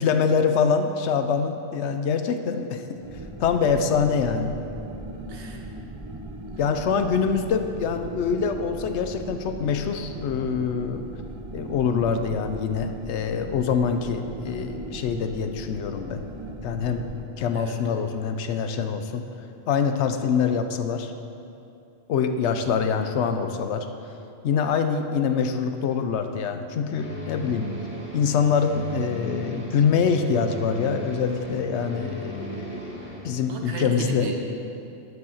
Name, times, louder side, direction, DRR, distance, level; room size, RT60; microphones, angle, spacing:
voice 1, 0.0-3.0 3.4-4.5 6.6-11.1 11.5-16.2 16.6-17.1 17.4-19.2 19.7-21.1 22.1-23.9 24.4-27.7 28.1-34.3, left 6 dB, 75° left, 7 dB, 0.9 m, -25 dB
sound 1, 3.0-17.2, right 1 dB, 40° right, 0.4 m, -38 dB
voice 2, 5.3-5.7 6.5-6.8 17.5-18.1 33.5-34.5, right 2 dB, 70° right, 2 dB, 1.2 m, -35 dB
sound 2, 26.9-33.2, equal, 10° right, 1.8 m, -37 dB
7.8 x 5.2 x 7.1 m, 2.7 s
omnidirectional pair, 1.2 m